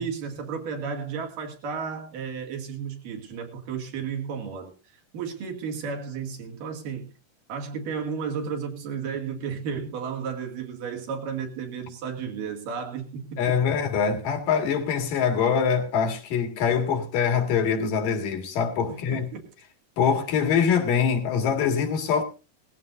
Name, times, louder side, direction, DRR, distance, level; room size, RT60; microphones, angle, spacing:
voice 1, 0.0-7.1 7.5-13.6 18.9-19.5, right 6 dB, 85° right, 3.9 m, -33 dB
voice 2, 13.4-19.2 20.0-22.2, left 7 dB, 90° left, 3.7 m, -24 dB
19.0 x 15.0 x 2.6 m
omnidirectional pair, 3.7 m